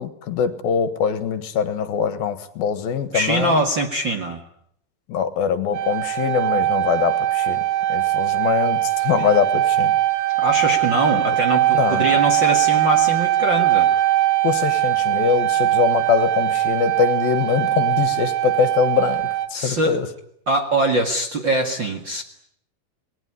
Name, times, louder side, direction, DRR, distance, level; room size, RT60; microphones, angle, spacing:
voice 1, 0.0-3.7 5.1-7.6 7.9-9.9 11.7-12.1 14.4-20.1, left 7 dB, 70° left, 11 dB, 3.2 m, -23 dB
voice 2, 3.1-4.4 9.2-9.3 10.4-13.9 19.5-20.0 20.5-22.2, right 2 dB, 40° right, 4 dB, 1.9 m, -22 dB
sound 1, 5.7-19.5, right 14 dB, 65° right, 3.5 m, -21 dB
28.0 x 20.0 x 9.9 m, 0.71 s
omnidirectional pair, 4.5 m